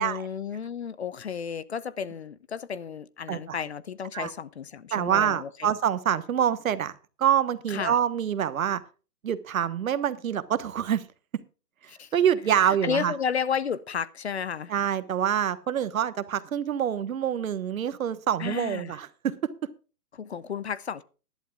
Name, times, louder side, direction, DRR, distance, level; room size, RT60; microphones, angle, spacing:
voice 1, 0.0-5.5 7.7-7.9 11.9-12.1 12.5-14.7 18.4-19.0 20.1-21.0, left 7 dB, 45° left, 0.6 m, -32 dB
voice 2, 4.9-6.9 7.2-8.8 9.2-11.0 12.1-13.1 14.7-19.5, right 9 dB, 60° right, 1.3 m, -26 dB
19.5 x 11.5 x 2.4 m
hypercardioid pair, 170°, 47 cm